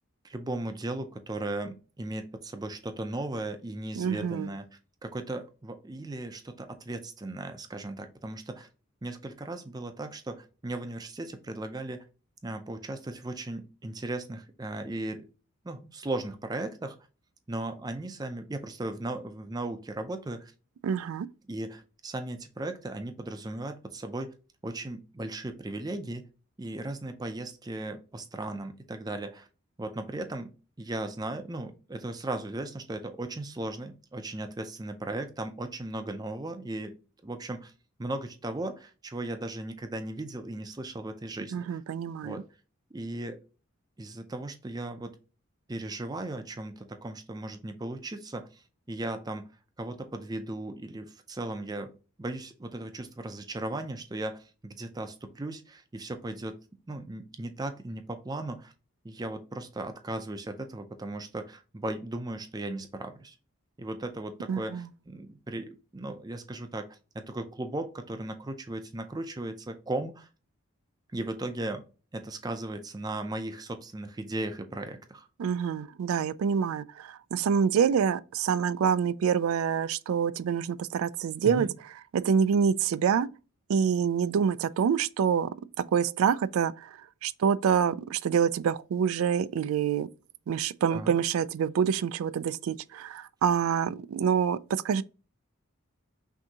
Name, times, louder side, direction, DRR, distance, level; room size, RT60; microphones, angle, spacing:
voice 1, 0.2-4.7 5.0-8.7 9.0-12.0 12.4-15.3 15.6-17.0 17.5-20.5 21.5-24.3 24.6-26.2 26.6-29.5 29.8-30.5 30.8-37.0 37.2-37.7 38.0-41.8 42.2-42.4 42.9-43.4 44.0-45.2 45.7-49.5 49.8-51.9 52.2-56.6 56.9-58.7 59.0-63.4 63.8-70.3 71.1-71.8 72.1-75.3 81.4-81.7 90.9-91.1, right 2 dB, 20° right, 0.4 m, -37 dB
voice 2, 4.0-4.5 20.8-21.3 41.5-42.4 64.5-64.9 75.4-81.7 82.1-83.3 83.7-85.5 85.9-86.9 87.2-90.1 90.5-95.0, right 7 dB, 85° right, 0.3 m, -26 dB
6.0 x 2.7 x 2.8 m
head